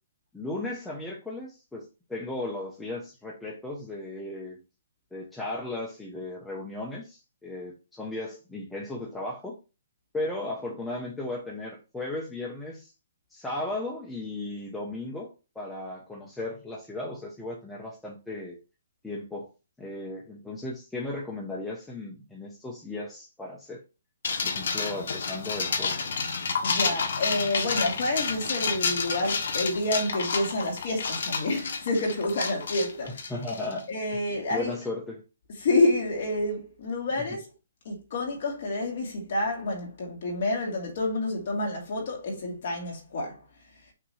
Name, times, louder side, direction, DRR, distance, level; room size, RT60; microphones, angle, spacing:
voice 1, 0.3-4.6 5.1-9.5 10.1-12.9 13.3-15.3 15.5-18.6 19.0-19.5 19.8-23.8 24.4-26.1 33.0-33.9 34.5-35.2, left 2 dB, 5° left, 0.8 m, -36 dB
sound 1, 24.2-33.8, left 5 dB, 60° left, 1.2 m, -30 dB
voice 2, 26.6-33.3 33.9-34.7 35.6-37.5 37.8-43.4, left 2 dB, 40° left, 2.3 m, -28 dB
5.7 x 3.0 x 5.6 m
hypercardioid pair, 175°, 0 cm